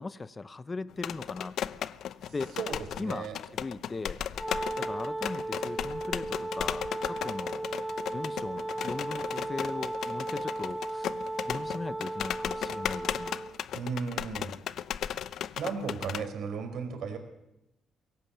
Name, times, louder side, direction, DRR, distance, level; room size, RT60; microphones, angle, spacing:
voice 1, 0.0-1.6 2.3-2.5 3.0-4.2 4.8-7.7 8.1-11.1 11.5-13.4, left 3 dB, 25° left, 15 dB, 0.8 m, -39 dB
sound 1, 0.9-16.3, left 10 dB, 70° left, 0.7 m, -36 dB
voice 2, 2.6-3.4 13.7-14.6 15.6-17.2, right 5 dB, 75° right, 6 dB, 4.6 m, -35 dB
Wind instrument woodwind instrument, 4.3-13.5, right 2 dB, ahead, 1.7 m, -36 dB
22.5 x 17.0 x 8.6 m, 0.87 s
cardioid pair, 90°, 0 cm